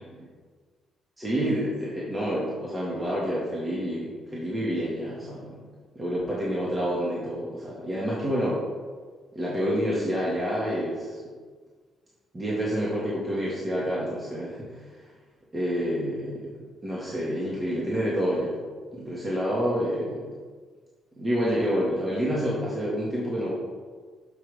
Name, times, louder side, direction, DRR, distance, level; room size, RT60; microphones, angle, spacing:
voice 1, 1.2-5.6 6.0-8.6 9.4-11.2 12.3-14.8 15.5-18.6 19.0-20.3 21.2-23.5, equal, 20° right, -7 dB, 2.0 m, -28 dB
7.9 x 7.3 x 3.6 m, 1.5 s
cardioid pair, 90°, 0 cm